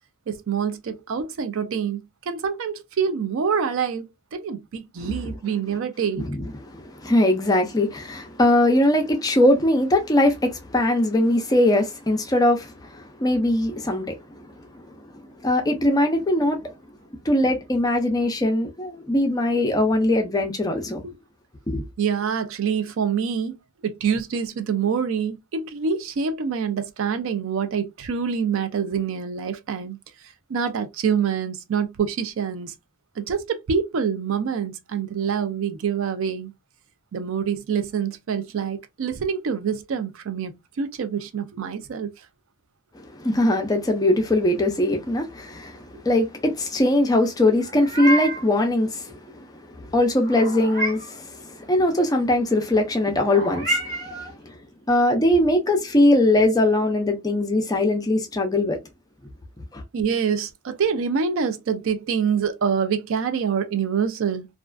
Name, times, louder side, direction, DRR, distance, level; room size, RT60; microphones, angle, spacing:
voice 1, 0.3-6.3 21.0-21.2 22.0-30.0 30.2-32.8 33.2-36.5 37.1-42.3 59.9-64.5, right 6 dB, 60° right, 0.4 m, -26 dB
voice 2, 5.0-5.3 6.2-14.9 15.4-16.7 17.2-21.0 21.7-21.9 42.9-54.6 54.9-58.8 59.7-59.8, left 1 dB, 15° left, 0.4 m, -21 dB
Meow, 47.6-48.5 50.2-51.2 53.2-54.3, right 1 dB, 40° right, 1.0 m, -28 dB
2.4 x 2.3 x 2.2 m
head